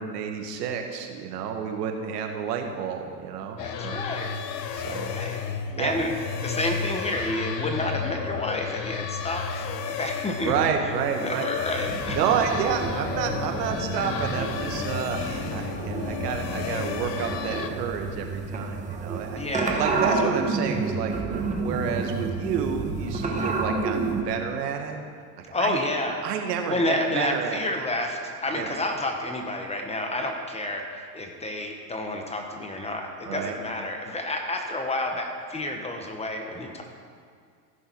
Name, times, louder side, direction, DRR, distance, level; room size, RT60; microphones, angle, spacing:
voice 1, 0.0-4.0 4.7-5.2 5.7-5.9 10.4-11.5 12.2-19.4 19.8-25.0 25.5-25.8 26.2-27.6 28.5-28.7 33.3-33.6, right 7 dB, 75° right, 4 dB, 1.7 m, -30 dB
sound 1, 3.6-17.7, left 7 dB, 80° left, 1.0 m, -32 dB
voice 2, 3.6-4.3 5.1-5.4 5.8-6.1 6.4-10.5 11.1-12.2 19.4-19.8 20.0-20.3 25.5-26.3 26.7-36.8, left 1 dB, 15° left, 3 dB, 1.2 m, -30 dB
sound 2, 11.8-24.2, right 3 dB, 15° right, 1.1 m, -30 dB
15.5 x 6.6 x 4.6 m, 2.2 s
hypercardioid pair, 110°, 49 cm